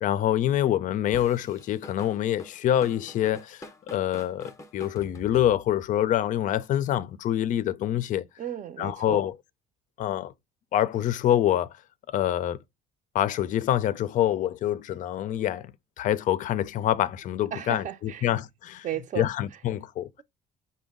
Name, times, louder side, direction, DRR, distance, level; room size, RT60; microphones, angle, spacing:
voice 1, 0.0-3.6 3.9-8.3 8.8-9.3 10.0-10.3 10.7-11.7 12.1-12.6 13.1-15.7 16.0-18.9 19.2-20.1, left 11 dB, 50° left, 0.4 m, -26 dB
Drum kit / Drum, 1.1-5.9, left 3 dB, 20° left, 0.7 m, -46 dB
voice 2, 8.4-9.2 17.5-18.3 18.8-19.3, right 10 dB, 50° right, 0.6 m, -34 dB
5.1 x 2.2 x 3.5 m
cardioid pair, 110°, 17 cm